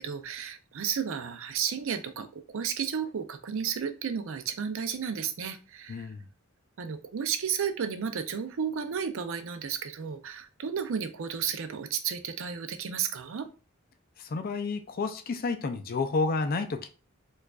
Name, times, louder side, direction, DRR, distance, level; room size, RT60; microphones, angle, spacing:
voice 1, 0.0-6.1 6.8-13.5, right 7 dB, 70° right, 0.5 m, -33 dB
voice 2, 5.9-6.2 14.2-16.9, left 3 dB, 45° left, 0.4 m, -30 dB
4.6 x 2.4 x 2.3 m
head